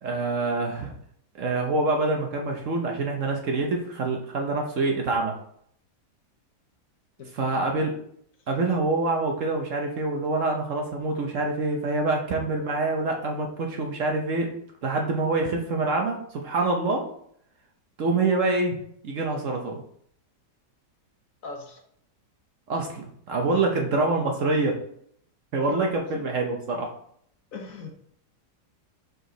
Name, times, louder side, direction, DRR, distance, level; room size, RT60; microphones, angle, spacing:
voice 1, 0.0-0.9 1.3-5.3 7.3-7.9 8.5-14.5 14.8-17.1 18.0-18.8 19.0-19.8 22.7-24.8 25.5-26.9, right 3 dB, 55° right, 1 dB, 1.0 m, -26 dB
voice 2, 21.4-21.8 23.5-23.8 25.6-26.2 27.5-27.9, left 4 dB, 60° left, 3 dB, 1.1 m, -39 dB
5.2 x 4.7 x 3.8 m, 0.67 s
omnidirectional pair, 1.8 m